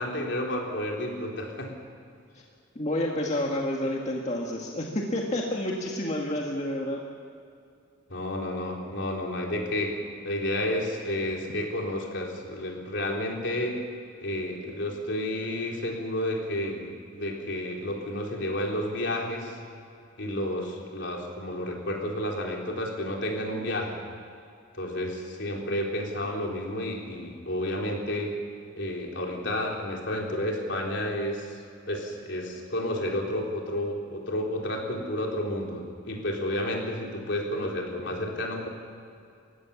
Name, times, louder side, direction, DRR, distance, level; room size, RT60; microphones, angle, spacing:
voice 1, 0.0-1.7 8.1-10.0 10.2-13.8 14.2-19.6 20.2-24.0 24.7-28.3 28.8-31.5 31.9-38.7, left 1 dB, 65° left, 0 dB, 4.0 m, -31 dB
voice 2, 2.8-7.0, left 1 dB, 35° left, -1 dB, 1.9 m, -29 dB
29.5 x 16.0 x 7.3 m, 2.4 s
head